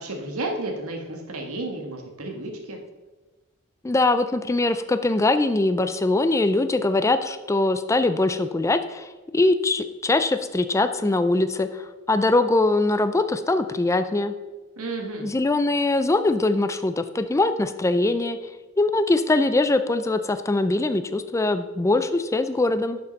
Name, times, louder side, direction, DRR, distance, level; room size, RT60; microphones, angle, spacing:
voice 1, 0.0-2.8 14.8-15.3, right 2 dB, 85° right, 2 dB, 1.6 m, -32 dB
voice 2, 3.8-14.3 15.2-18.4 18.8-23.0, left 2 dB, 15° left, 10 dB, 0.4 m, -22 dB
11.0 x 6.6 x 4.0 m, 1.2 s
head